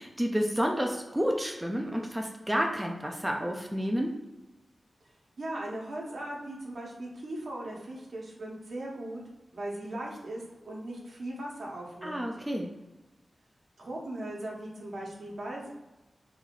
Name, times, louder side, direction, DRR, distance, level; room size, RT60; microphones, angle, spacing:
voice 1, 0.0-4.2 12.0-12.7, equal, 10° right, 1 dB, 0.4 m, -30 dB
voice 2, 5.4-9.2 9.5-12.2 13.8-15.7, right 1 dB, 70° right, -3 dB, 1.0 m, -38 dB
3.1 x 2.6 x 3.8 m, 1.0 s
wide cardioid pair, 125°, 0 cm